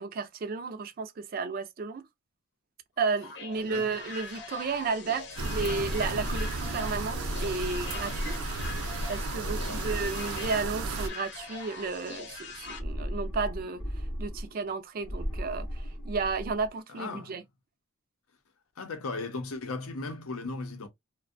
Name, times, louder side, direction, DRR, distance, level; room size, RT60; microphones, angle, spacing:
voice 1, 0.0-2.0 3.0-8.3 9.1-13.8 14.2-17.4, right 4 dB, 45° right, 0.3 m, -33 dB
sound 1, 3.2-12.8, left 4 dB, 55° left, 0.8 m, -42 dB
voice 2, 3.6-4.0 9.4-10.0 14.3-14.4 16.9-17.4 18.8-20.9, left 3 dB, 85° left, 0.7 m, -37 dB
sound 2, 5.4-11.1, right 2 dB, 90° right, 0.6 m, -33 dB
sound 3, 6.9-8.8 9.7-11.2 12.6-14.7 15.0-16.7, equal, 15° left, 0.7 m, -38 dB
2.5 x 2.1 x 2.5 m
head